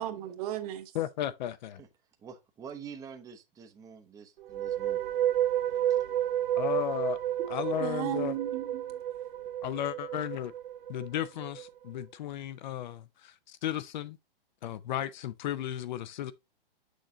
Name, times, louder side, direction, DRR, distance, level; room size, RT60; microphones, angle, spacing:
voice 1, 0.0-1.0 7.4-9.0, right 12 dB, 40° right, 1.2 m, -36 dB
voice 2, 1.0-1.8 6.6-7.2 7.5-8.3 9.6-10.5 10.9-14.2 14.6-16.3, left 11 dB, 50° left, 0.6 m, -34 dB
voice 3, 2.2-5.0 5.7-6.1, right 7 dB, 10° right, 0.7 m, -47 dB
sound 1, 4.4-11.7, right 11 dB, 65° right, 0.9 m, -31 dB
6.5 x 6.5 x 2.7 m
hypercardioid pair, 145°, 29 cm